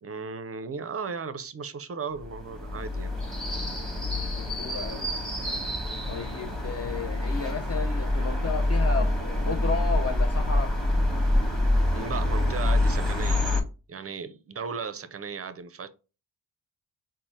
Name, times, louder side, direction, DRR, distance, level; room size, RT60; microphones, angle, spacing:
voice 1, 0.0-3.1 11.9-13.5 13.9-15.9, right 5 dB, 30° right, 0.5 m, -36 dB
sound 1, 2.2-13.6, left 1 dB, ahead, 1.0 m, -26 dB
voice 2, 4.1-5.1 6.1-10.7, left 4 dB, 35° left, 0.4 m, -33 dB
4.0 x 2.1 x 3.1 m
supercardioid pair, 45°, 48 cm